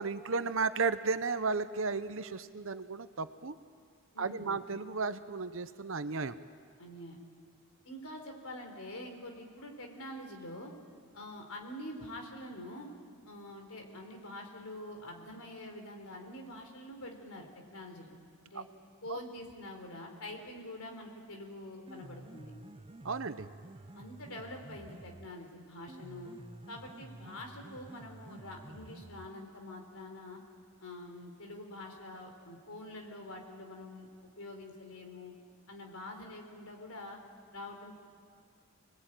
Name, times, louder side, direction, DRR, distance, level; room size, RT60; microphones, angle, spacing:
voice 1, 0.0-3.6 4.2-6.4 18.5-18.6 23.0-23.5, right 4 dB, 60° right, 12 dB, 0.8 m, -34 dB
voice 2, 4.1-4.6 6.8-7.2 7.8-10.7 11.1-12.9 13.2-18.2 18.5-18.6 19.0-22.5 23.9-26.3 26.7-30.4 30.8-35.3 35.7-37.2 37.5-37.9, left 1 dB, 75° left, 3 dB, 3.9 m, -46 dB
Piano, 21.7-29.7, right 2 dB, 25° right, 0.6 m, -51 dB
26.5 x 20.0 x 9.0 m, 2.1 s
head